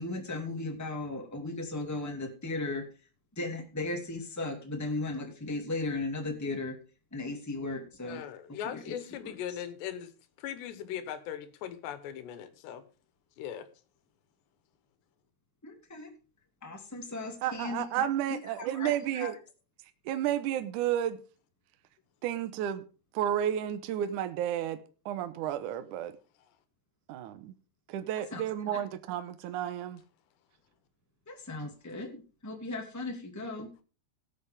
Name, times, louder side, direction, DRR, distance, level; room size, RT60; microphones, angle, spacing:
voice 1, 0.0-2.8 3.3-6.7 7.1-8.2 8.6-8.9 9.2-9.3 15.6-16.1 16.6-19.3 28.3-28.4 28.7-28.8 31.3-33.7, left 2 dB, 10° left, 1.0 m, -36 dB
voice 2, 8.1-12.8 13.4-13.7, left 9 dB, 85° left, 3.4 m, -39 dB
voice 3, 17.4-19.4 20.1-21.2 22.2-22.8 23.1-26.1 27.1-27.5 27.9-30.0, right 11 dB, 75° right, 1.9 m, -32 dB
18.0 x 8.0 x 3.5 m
omnidirectional pair, 4.8 m